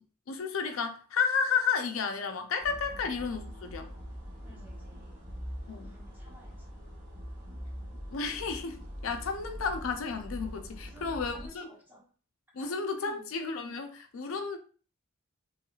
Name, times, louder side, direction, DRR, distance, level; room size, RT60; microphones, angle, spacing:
voice 1, 0.3-3.9 5.7-5.9 8.1-11.7 12.5-14.6, left 5 dB, 65° left, 0.4 m, -32 dB
sound 1, 2.6-11.5, equal, 35° right, 1.1 m, -43 dB
voice 2, 4.4-5.2 5.8-6.7 10.8-12.1 12.6-12.7 13.0-13.3, right 1 dB, 10° right, 0.8 m, -54 dB
3.0 x 2.9 x 2.3 m
head